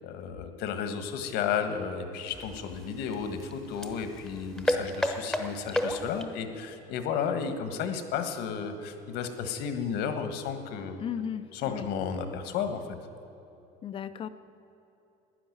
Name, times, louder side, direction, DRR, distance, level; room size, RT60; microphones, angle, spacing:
voice 1, 0.0-11.0 11.5-13.0, left 7 dB, 65° left, 8 dB, 1.5 m, -33 dB
sound 1, 2.3-6.4, left 1 dB, ahead, 1.0 m, -33 dB
voice 2, 11.0-11.9 13.8-14.3, left 8 dB, 30° left, 13 dB, 0.6 m, -35 dB
13.0 x 10.0 x 9.8 m, 2.9 s
cardioid pair, 160°, 18 cm